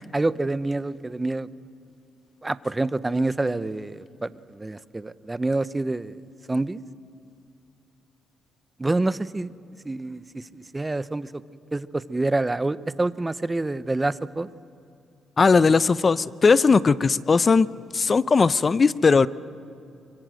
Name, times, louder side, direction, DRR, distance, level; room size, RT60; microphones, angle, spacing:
voice 1, 0.1-1.5 2.4-6.2 6.5-6.8 8.8-9.5 9.8-11.4 11.7-14.5, right 2 dB, 15° right, 16 dB, 0.7 m, -27 dB
voice 2, 15.4-17.7 17.9-19.3, left 4 dB, 35° left, 17 dB, 0.6 m, -18 dB
25.0 x 23.0 x 7.7 m, 2.7 s
cardioid pair, 90°, 0 cm